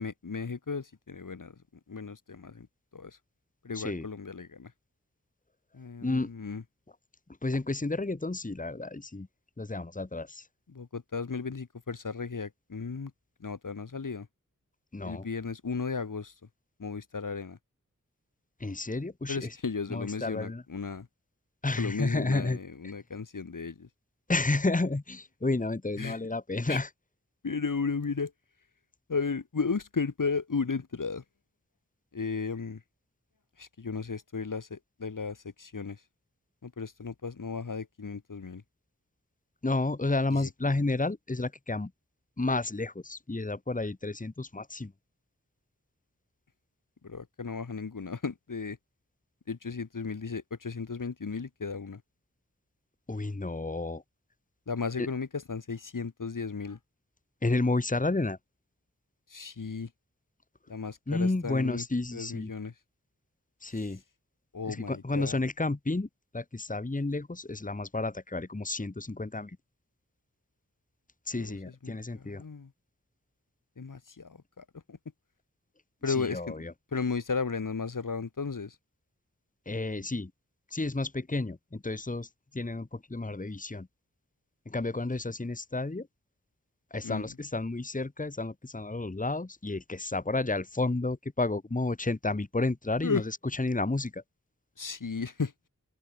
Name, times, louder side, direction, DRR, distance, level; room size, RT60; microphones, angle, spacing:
voice 1, 0.0-1.6 1.9-2.7 2.9-3.2 3.6-4.7 5.7-6.6 10.7-13.1 13.4-14.3 15.0-16.3 16.8-17.6 19.3-21.1 21.8-23.9 26.0-26.2 26.7-26.8 27.4-28.3 29.1-31.2 32.1-32.8 33.6-36.0 36.6-38.6 40.3-40.5 47.0-48.8 49.5-52.0 54.7-56.8 59.3-59.9 60.7-61.9 62.1-62.7 63.7-63.8 64.5-65.4 71.4-72.7 73.8-75.0 76.0-76.6 76.9-78.8 87.0-87.3 93.0-93.2 94.8-95.5, left 5 dB, 75° left, 2.1 m, -35 dB
voice 2, 3.7-4.0 6.0-6.3 7.4-9.3 9.6-10.5 14.9-15.3 18.6-19.5 19.9-20.6 21.6-22.6 24.3-26.9 39.6-41.9 42.4-44.9 53.1-54.0 57.4-58.4 61.1-62.5 63.6-64.0 64.6-66.1 66.3-69.6 71.3-72.4 76.1-76.7 79.6-80.3 80.7-83.9 84.6-86.1 86.9-94.2, left 2 dB, 25° left, 1.5 m, -31 dB
open air
wide cardioid pair, 60°, 33 cm